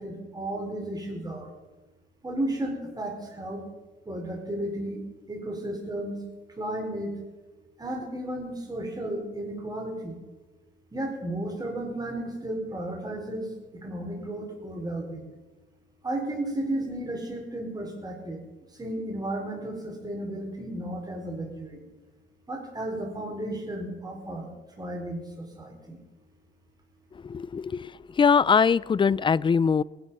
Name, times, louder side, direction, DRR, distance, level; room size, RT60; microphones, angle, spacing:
voice 1, 0.0-1.5 2.2-3.7 4.1-6.2 6.6-7.1 7.8-10.2 10.9-13.5 13.7-15.3 16.0-18.4 18.8-21.8 22.5-24.5 24.8-26.0, right 1 dB, 20° right, 1 dB, 4.4 m, -33 dB
voice 2, 27.3-27.9 28.2-29.8, left 6 dB, 25° left, 23 dB, 0.4 m, -22 dB
19.0 x 12.0 x 5.5 m, 1.2 s
cardioid pair, 90°, 20 cm